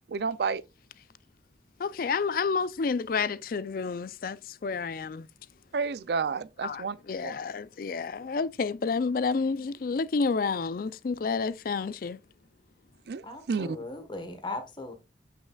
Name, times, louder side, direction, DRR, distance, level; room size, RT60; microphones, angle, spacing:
voice 1, 0.1-0.6 5.7-7.0 7.2-7.4 13.1-13.8, right 5 dB, 65° right, 0.4 m, -30 dB
voice 2, 1.8-4.4 4.6-5.2 6.6-6.8 7.1-12.2, left 4 dB, 50° left, 0.4 m, -29 dB
voice 3, 13.2-14.9, left 2 dB, 25° left, 1.2 m, -38 dB
7.9 x 5.6 x 2.3 m
head